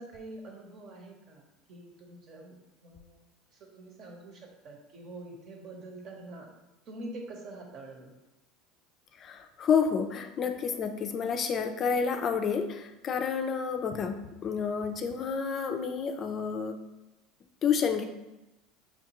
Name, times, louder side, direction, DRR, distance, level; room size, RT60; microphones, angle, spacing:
voice 1, 0.0-1.4 1.7-2.5 2.8-3.2 3.5-6.5 6.9-8.1, right 2 dB, 50° right, 1 dB, 0.9 m, -45 dB
voice 2, 9.2-16.8 17.6-18.0, left 6 dB, 40° left, 6 dB, 0.4 m, -29 dB
5.6 x 2.3 x 2.9 m, 1.0 s
supercardioid pair, 105°, 0 cm